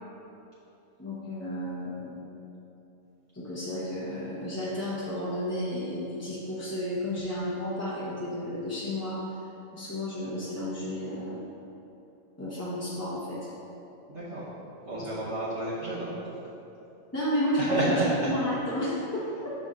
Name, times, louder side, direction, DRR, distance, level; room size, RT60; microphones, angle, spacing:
voice 1, 1.0-2.3 3.3-9.2 9.7-11.4 12.4-13.5 15.0-15.1 17.1-18.0 18.3-19.5, left 1 dB, 15° left, -9 dB, 0.6 m, -32 dB
voice 2, 14.1-14.5 14.8-16.2 17.6-18.1, right 2 dB, 60° right, -9 dB, 1.1 m, -30 dB
6.7 x 4.3 x 3.6 m, 3.0 s
omnidirectional pair, 1.5 m